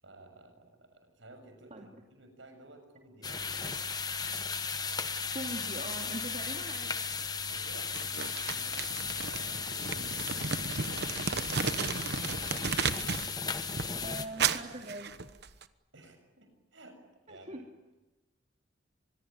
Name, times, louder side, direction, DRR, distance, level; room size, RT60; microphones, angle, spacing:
voice 1, 0.0-3.8 7.4-11.9 15.9-17.0 17.3-17.6, right 2 dB, 75° right, 6 dB, 7.1 m, -54 dB
sound 1, 3.2-14.3, left 5 dB, 20° left, 1.1 m, -36 dB
voice 2, 5.3-7.0 14.0-15.1 17.3-17.7, right 1 dB, 35° right, 1 dB, 2.7 m, -41 dB
Crumpling crinkling, 7.9-13.3 13.6-15.6, right 5 dB, 55° right, 1.1 m, -34 dB
25.0 x 21.5 x 9.1 m, 1.1 s
head